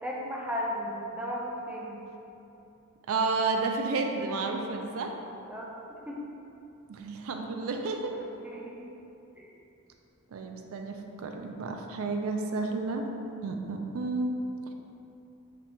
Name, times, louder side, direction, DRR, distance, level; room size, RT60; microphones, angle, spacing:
voice 1, 0.0-2.0 5.5-5.7 6.1-6.2 8.1-8.9 9.4-9.5, equal, 5° right, -3 dB, 0.4 m, -35 dB
voice 2, 3.1-5.1 6.9-8.1 10.3-13.1 13.4-14.4, right 3 dB, 70° right, 4 dB, 0.4 m, -31 dB
4.2 x 3.2 x 3.1 m, 2.8 s
head